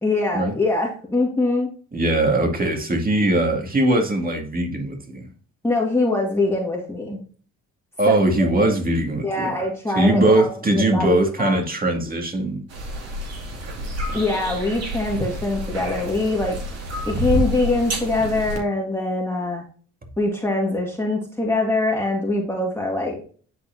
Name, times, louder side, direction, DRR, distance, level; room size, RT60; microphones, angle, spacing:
voice 1, 0.0-1.7 5.6-7.2 8.1-8.2 8.6-8.7 9.2-11.6 14.1-16.6 17.1-19.6 20.2-23.2, left 2 dB, 10° left, 2.0 m, -23 dB
voice 2, 1.9-5.3 8.0-9.5 10.0-12.6, right 1 dB, 30° right, 2.1 m, -20 dB
sound 1, 12.7-18.6, equal, 55° right, 2.4 m, -29 dB
9.7 x 4.3 x 2.7 m
cardioid pair, 90°, 30 cm